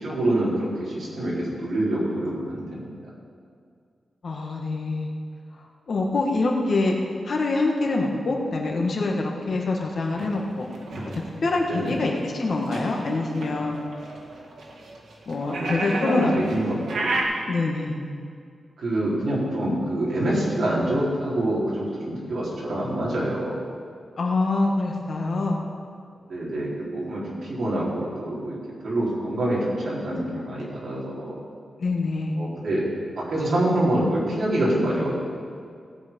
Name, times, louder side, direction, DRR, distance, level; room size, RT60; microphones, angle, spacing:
voice 1, 0.0-2.9 11.7-12.0 15.4-17.2 18.8-23.6 26.3-28.6 28.8-31.4 32.4-32.9 33.2-35.1, right 1 dB, 60° right, -6 dB, 3.9 m, -26 dB
voice 2, 4.2-5.1 5.9-6.9 7.2-10.7 11.4-13.8 15.3-16.3 17.5-18.0 24.2-25.6 31.8-32.4, left 3 dB, 50° left, 0 dB, 1.6 m, -25 dB
sound 1, 10.1-17.2, right 2 dB, 85° right, 1.9 m, -33 dB
17.0 x 8.0 x 5.4 m, 2.2 s
wide cardioid pair, 175°, 0 cm